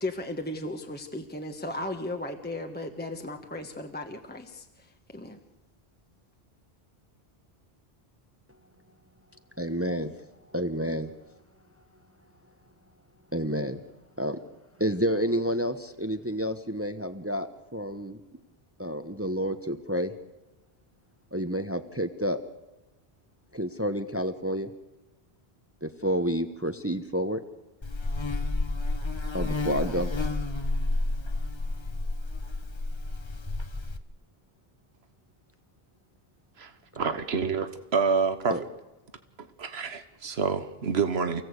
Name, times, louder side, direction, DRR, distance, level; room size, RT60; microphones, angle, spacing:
voice 1, 0.0-5.4, left 1 dB, 10° left, 4 dB, 1.3 m, -36 dB
voice 2, 9.6-10.1 10.5-11.1 13.3-13.8 14.2-14.4 14.8-18.2 18.8-20.1 21.3-22.4 23.5-24.7 25.8-27.4 29.3-30.1 38.5-38.6, equal, 15° right, 9 dB, 1.0 m, -29 dB
Buzz, 27.8-34.0, left 2 dB, 30° left, 1.1 m, -30 dB
voice 3, 36.6-38.6 39.4-41.4, right 5 dB, 85° right, 9 dB, 1.5 m, -28 dB
29.0 x 16.5 x 8.3 m, 1.1 s
omnidirectional pair, 1.0 m